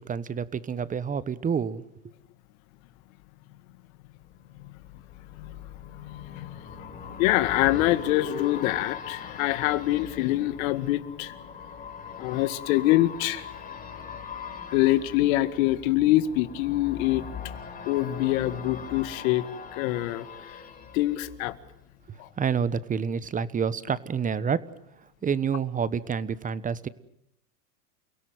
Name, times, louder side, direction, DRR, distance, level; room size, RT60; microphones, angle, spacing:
voice 1, 0.0-1.8 22.1-24.6 25.2-26.9, right 6 dB, 15° right, 17 dB, 1.2 m, -28 dB
sound 1, 4.3-22.1 22.4-22.5, left 6 dB, 20° left, 5.6 m, -42 dB
voice 2, 5.8-6.6 7.2-11.4 12.2-13.5 14.7-17.3 17.9-19.5 19.7-20.6 20.9-21.6 22.2-22.3, left 15 dB, 55° left, 13 dB, 2.1 m, -25 dB
30.0 x 17.0 x 9.3 m, 0.79 s
hypercardioid pair, 115°, 48 cm